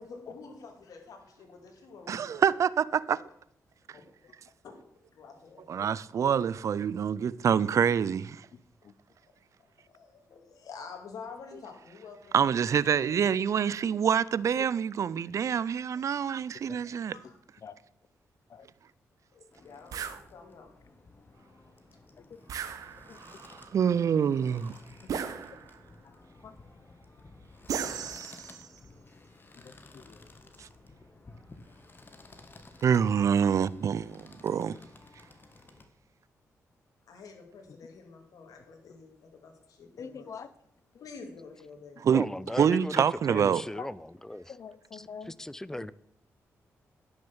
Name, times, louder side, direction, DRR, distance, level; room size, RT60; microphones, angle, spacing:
voice 1, 0.0-2.5 2.9-3.2 3.9-4.0 4.6-5.8 9.6-12.3 12.7-13.8 17.1-17.4 19.3-20.7 37.1-40.3 41.0-42.0, left 4 dB, 80° left, 2.4 m, -49 dB
voice 2, 2.1-3.2 5.7-8.4 12.3-17.2 23.2-23.3 23.7-24.8 30.6-30.7 32.8-34.8 42.0-42.2 42.6-43.6, right 7 dB, 60° right, 0.4 m, -26 dB
voice 3, 8.5-8.9 11.5-11.6 14.5-14.7 16.7-16.8 17.2-17.3 17.6-17.8 18.5-18.7 22.2-22.4 23.1-23.4 25.0-25.2 26.0-26.1 26.4-26.5 29.5-30.2 37.7-37.9 38.8-39.0 40.0-40.5 40.9-41.0 43.8-43.9 44.5-45.4 45.7-45.9, left 6 dB, 60° left, 0.9 m, -46 dB
sound 1, 19.5-35.9, left 2 dB, 35° left, 1.7 m, -54 dB
sound 2, 19.9-20.2 22.5-23.3 25.1-25.9 27.7-28.8, right 7 dB, 80° right, 0.9 m, -36 dB
voice 4, 42.1-44.0 44.3-44.5 45.4-45.9, left 1 dB, 10° left, 0.5 m, -36 dB
10.5 x 6.6 x 7.2 m
cardioid pair, 75°, 6 cm